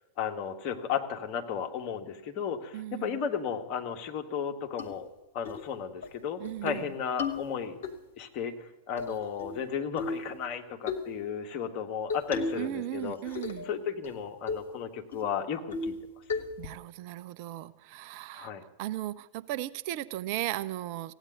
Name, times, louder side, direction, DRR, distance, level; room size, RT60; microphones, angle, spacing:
voice 1, 0.2-5.1 5.3-7.8 8.2-13.4 13.6-15.9 18.3-18.6, left 7 dB, 40° left, 4 dB, 1.7 m, -34 dB
voice 2, 2.7-3.2 6.4-6.9 12.6-13.7 16.6-18.5 18.8-21.1, right 14 dB, 45° right, 13 dB, 0.5 m, -36 dB
sound 1, 4.8-4.9 5.4-5.6 6.0-6.1 6.4-6.8 7.2-7.9 9.0-9.6 10.0-10.3 10.9-11.1 12.1-12.7 13.0-13.7 14.0-14.1 14.5-14.7 15.1-15.2 15.7-16.0 16.3-16.7, left 4 dB, 60° left, 1.4 m, -34 dB
16.0 x 9.0 x 9.6 m, 0.94 s
figure-of-eight pair, 90°, 0 cm